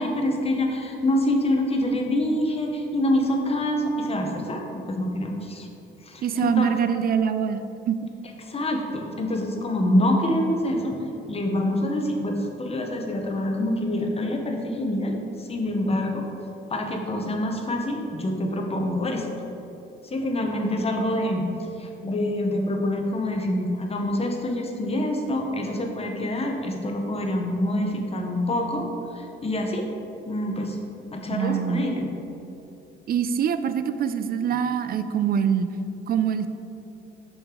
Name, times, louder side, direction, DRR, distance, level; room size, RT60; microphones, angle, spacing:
voice 1, 0.0-5.7 6.0-6.7 8.4-11.0 11.3-16.2 16.7-19.3 20.0-28.9 29.1-29.9 30.2-30.8 31.1-32.1, left 1 dB, 30° left, 2 dB, 0.9 m, -26 dB
voice 2, 6.2-7.6 7.9-8.0 31.3-31.8 33.1-35.7 36.1-36.5, right 8 dB, 50° right, 10 dB, 0.4 m, -24 dB
6.1 x 4.9 x 3.8 m, 2.8 s
cardioid pair, 90°, 20 cm